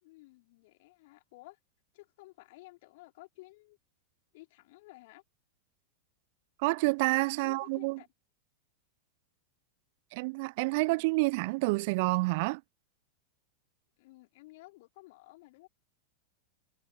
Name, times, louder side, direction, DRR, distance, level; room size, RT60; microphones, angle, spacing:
voice 1, 0.0-1.6 1.9-3.8 4.3-5.2 7.4-8.1 10.7-11.3 14.0-15.7, left 21 dB, 50° left, 2.3 m, -54 dB
voice 2, 6.6-8.0 10.1-12.6, right 26 dB, 50° right, 0.4 m, -28 dB
figure-of-eight pair, 90°, 0 cm